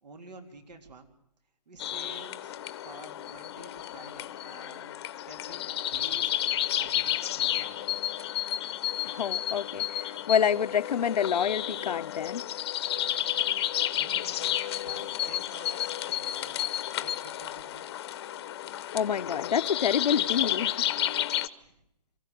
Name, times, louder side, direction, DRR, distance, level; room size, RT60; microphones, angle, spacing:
voice 1, 0.0-1.1 1.7-2.5 2.8-6.3 6.8-8.0 13.7-14.5 14.8-17.9 21.6-21.8, right 3 dB, 80° right, 3.5 m, -50 dB
sound 1, 1.8-21.5, left 12 dB, 40° left, 0.9 m, -31 dB
voice 2, 9.0-12.4 18.9-20.8 21.1-21.3, left 8 dB, 75° left, 0.8 m, -28 dB
24.5 x 15.0 x 9.3 m
hypercardioid pair, 155°, 21 cm